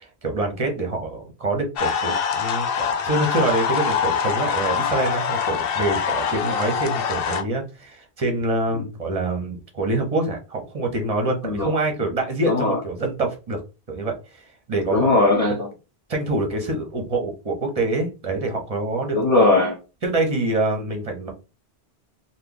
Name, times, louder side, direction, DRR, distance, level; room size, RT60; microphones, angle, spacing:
voice 1, 0.0-13.6 13.9-15.1 16.1-19.2 20.0-21.3, right 2 dB, 35° right, 1.0 m, -25 dB
sound 1, 1.8-7.4, left 7 dB, 70° left, 0.7 m, -24 dB
voice 2, 11.4-11.7 12.5-12.8 14.9-15.7 19.1-19.8, left 2 dB, 35° left, 1.2 m, -19 dB
3.2 x 2.1 x 3.8 m
omnidirectional pair, 1.0 m